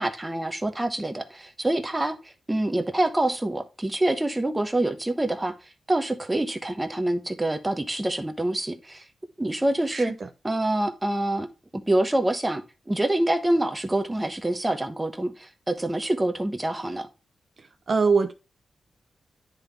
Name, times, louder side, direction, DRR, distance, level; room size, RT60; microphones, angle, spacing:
voice 1, 0.0-5.6 5.9-9.0 9.4-10.2 10.4-11.5 11.7-17.1, right 1 dB, 15° right, 0.9 m, -26 dB
voice 2, 17.9-18.3, right 4 dB, 50° right, 0.7 m, -22 dB
9.9 x 3.7 x 3.4 m
cardioid pair, 90°, 0 cm